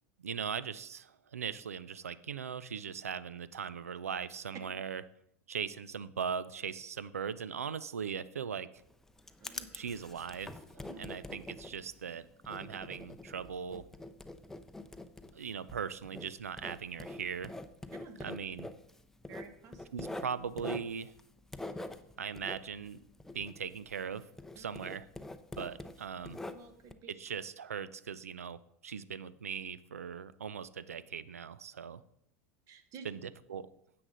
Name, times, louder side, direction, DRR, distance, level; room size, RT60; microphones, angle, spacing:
voice 1, 0.2-5.0 5.5-8.7 9.7-13.9 15.3-17.5 18.2-18.7 19.9-21.1 22.2-23.0 23.3-24.3 24.6-25.1 25.6-26.4 27.1-32.0 33.0-33.2 33.5-33.7, right 7 dB, 90° right, 17 dB, 0.4 m, -39 dB
Writing, 8.8-24.1 24.4-26.9, left 2 dB, 5° left, 0.6 m, -45 dB
voice 2, 19.3-19.9 24.5-24.7 26.5-27.1 32.7-33.1, right 5 dB, 45° right, 8 dB, 1.3 m, -51 dB
9.8 x 7.7 x 3.9 m, 0.74 s
hypercardioid pair, 90°, 8 cm